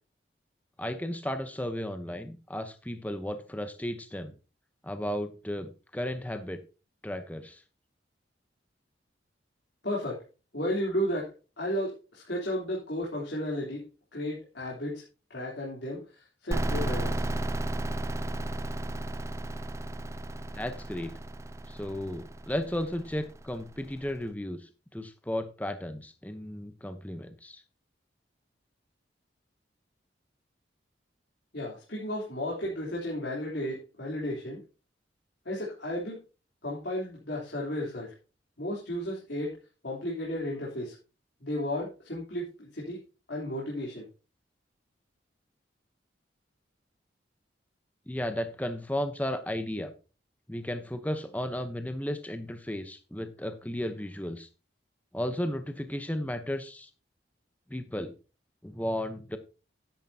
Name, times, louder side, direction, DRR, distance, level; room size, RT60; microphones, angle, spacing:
voice 1, 0.8-4.3 4.8-6.6 7.0-7.6 20.5-21.1 21.7-27.6 48.1-49.9 50.5-54.5 55.1-56.9 57.7-58.1 58.6-59.4, left 1 dB, 10° left, 8 dB, 0.9 m, -34 dB
voice 2, 9.8-10.2 10.5-13.9 14.1-15.0 15.3-17.3 31.5-34.6 35.4-36.2 36.6-38.1 38.6-39.5 39.8-40.9 41.4-43.0 43.3-44.1, left 1 dB, 65° left, -4 dB, 3.4 m, -33 dB
sound 1, 16.5-24.0, right 1 dB, 15° right, 0.4 m, -34 dB
12.0 x 10.5 x 2.8 m, 0.33 s
head